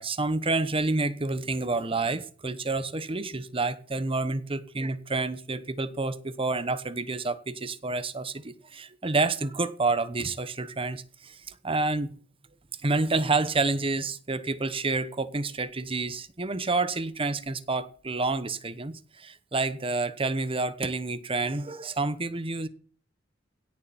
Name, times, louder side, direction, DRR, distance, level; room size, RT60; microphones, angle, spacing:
voice 1, 0.0-12.1 12.8-22.7, right 3 dB, 30° right, 1.0 m, -29 dB
17.0 x 7.0 x 7.1 m
head